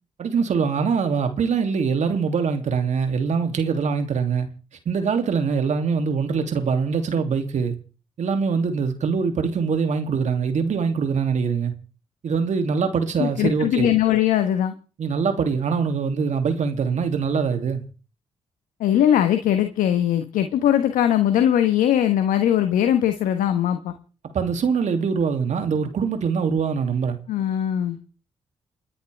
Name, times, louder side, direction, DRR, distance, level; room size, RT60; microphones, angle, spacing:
voice 1, 0.2-4.5 4.9-7.8 8.2-11.7 12.2-13.9 15.0-17.8 24.2-27.2, right 5 dB, 60° right, 2.7 m, -23 dB
voice 2, 13.2-14.7 18.8-23.9 27.3-28.0, left 10 dB, 75° left, 1.2 m, -20 dB
29.5 x 10.0 x 3.5 m
hypercardioid pair, 40°, 14 cm